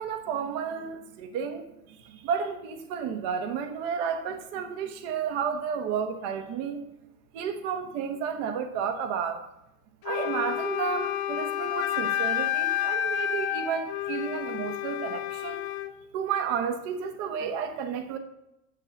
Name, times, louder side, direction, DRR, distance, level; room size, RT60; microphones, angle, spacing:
voice 1, 0.0-6.9 7.3-9.4 10.0-15.6 16.1-18.2, right 7 dB, 65° right, 7 dB, 1.3 m, -32 dB
Wind instrument woodwind instrument, 10.0-15.9, left 11 dB, 60° left, 1.0 m, -30 dB
7.5 x 6.5 x 7.2 m, 0.87 s
supercardioid pair, 100°, 43 cm